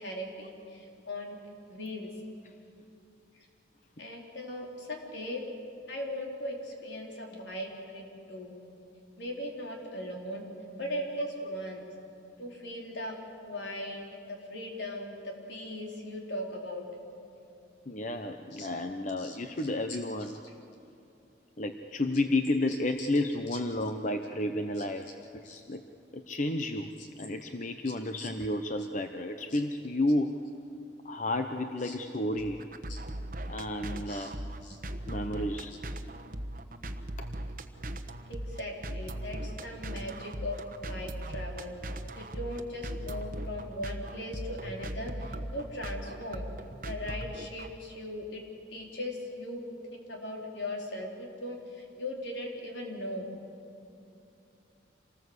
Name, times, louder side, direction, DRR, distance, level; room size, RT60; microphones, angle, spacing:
voice 1, 0.0-1.4 1.7-2.1 4.0-5.4 5.9-8.6 9.2-10.4 10.8-11.9 12.4-13.2 13.4-16.8 18.5-18.7 19.2-19.4 23.0-23.1 25.4-25.6 28.2-28.3 29.5-29.6 31.8-31.9 32.9-33.0 34.1-34.3 34.6-34.8 38.3-41.8 42.1-46.5 46.8-48.4 48.7-53.3, left 1 dB, 70° left, 0 dB, 4.3 m, -39 dB
voice 2, 17.9-20.4 21.6-25.8 26.1-30.4 31.0-32.7 33.5-34.3 35.1-35.8 37.2-37.3, left 1 dB, 40° left, 6 dB, 0.8 m, -31 dB
sound 1, 32.4-47.7, right 1 dB, 45° right, 1.2 m, -39 dB
26.5 x 19.5 x 8.2 m, 2.8 s
head